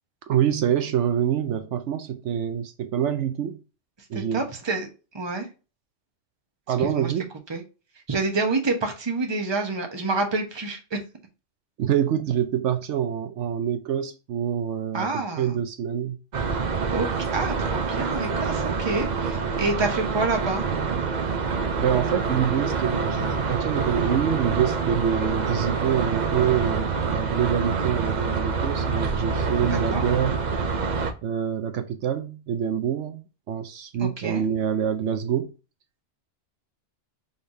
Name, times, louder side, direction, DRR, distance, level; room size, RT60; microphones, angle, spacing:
voice 1, 0.3-3.6 4.1-4.4 6.7-7.2 11.8-16.2 21.7-30.4 31.2-35.5, right 9 dB, 75° right, 0.9 m, -26 dB
voice 2, 4.1-4.9 5.1-5.5 6.8-7.1 7.5-7.6 8.1-11.0 14.9-15.5 16.9-20.7 29.6-30.0 34.0-34.4, right 3 dB, 25° right, 1.0 m, -28 dB
sound 1, 16.3-31.1, right 5 dB, 45° right, 0.6 m, -26 dB
5.5 x 3.4 x 2.6 m
omnidirectional pair, 1.2 m